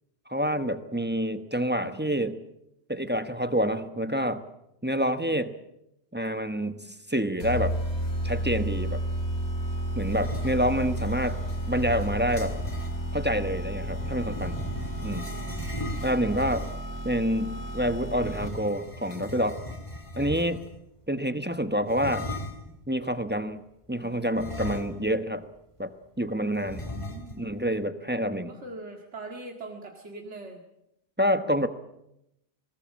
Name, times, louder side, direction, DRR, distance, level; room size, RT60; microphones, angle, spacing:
voice 1, 0.3-2.4 2.9-4.4 4.8-5.5 6.1-7.8 8.2-9.0 10.0-11.4 11.7-12.6 13.1-14.6 15.0-15.3 16.0-16.7 17.0-19.6 20.2-20.6 21.1-22.3 22.9-23.6 23.9-25.5 25.8-25.9 26.2-26.9 27.4-28.5 31.2-31.7, equal, 10° right, 9 dB, 1.0 m, -27 dB
sound 1, 7.4-18.8, right 1 dB, 80° left, 3.5 m, -32 dB
sound 2, 10.1-13.0 13.8-17.0 18.1-20.8 21.9-22.7 24.3-25.3 25.6-25.7 26.7-27.5, left 1 dB, 25° left, 2.4 m, -38 dB
voice 2, 14.9-15.7 20.2-20.4 26.9-27.5 28.5-30.6, right 2 dB, 85° right, 2 dB, 2.3 m, -42 dB
22.0 x 19.0 x 7.5 m, 0.84 s
omnidirectional pair, 1.1 m